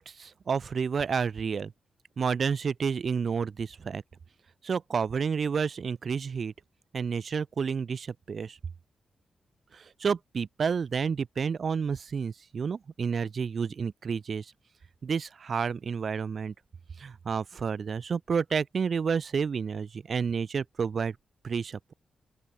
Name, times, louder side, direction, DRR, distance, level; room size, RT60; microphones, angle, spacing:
voice 1, 0.0-1.7 2.2-4.0 4.6-6.5 6.9-8.6 9.7-14.5 15.0-16.5 17.0-21.1 21.4-21.9, right 6 dB, 55° right, 3.4 m, -30 dB
open air
cardioid pair, 90°, 0 cm